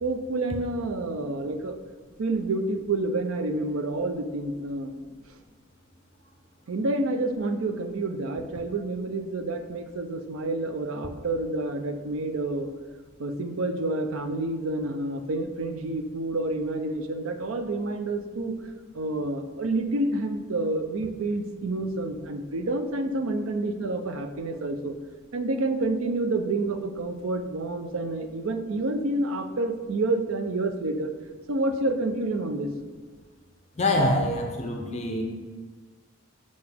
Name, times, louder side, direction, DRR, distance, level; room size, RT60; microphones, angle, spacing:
voice 1, 0.0-1.8 2.2-4.9 6.7-12.7 13.2-18.5 18.9-24.9 25.3-31.1 31.5-32.7, right 2 dB, 80° right, 7 dB, 0.5 m, -28 dB
voice 2, 33.8-35.2, left 1 dB, 30° left, 2 dB, 0.6 m, -25 dB
6.9 x 5.2 x 3.4 m, 1.4 s
head